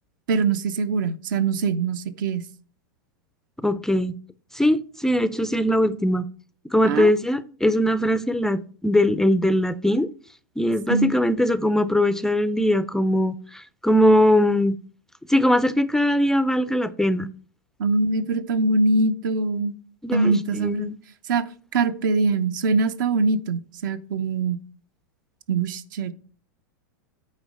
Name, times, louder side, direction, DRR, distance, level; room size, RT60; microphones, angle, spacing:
voice 1, 0.3-2.5 6.8-7.1 10.9-11.1 17.8-19.7 20.1-20.9 21.3-21.5 21.7-24.6 25.5-26.1, right 3 dB, 70° right, 0.7 m, -23 dB
voice 2, 3.6-4.2 4.5-6.3 6.7-10.1 10.6-14.8 15.3-17.3 20.0-21.0, left 1 dB, 5° left, 0.3 m, -21 dB
9.1 x 3.1 x 6.3 m
hypercardioid pair, 120°, 11 cm